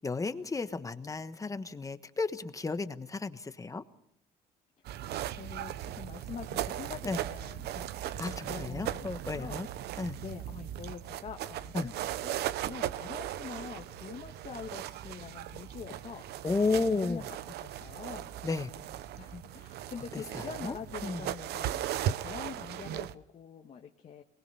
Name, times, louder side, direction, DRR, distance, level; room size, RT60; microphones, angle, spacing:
voice 1, 0.0-3.8 7.0-7.2 8.2-9.7 10.0-10.2 11.7-11.9 16.4-17.2 18.4-18.7 20.1-20.8 21.0-21.3, left 3 dB, 20° left, 11 dB, 1.2 m, -33 dB
sound 1, 4.8-23.1, right 12 dB, 75° right, 0.8 m, -38 dB
voice 2, 5.4-9.6 10.2-11.9 12.2-16.4 16.7-18.3 19.1-24.2, left 7 dB, 40° left, 3 dB, 1.5 m, -45 dB
23.5 x 20.5 x 5.6 m, 0.76 s
cardioid pair, 110°, 17 cm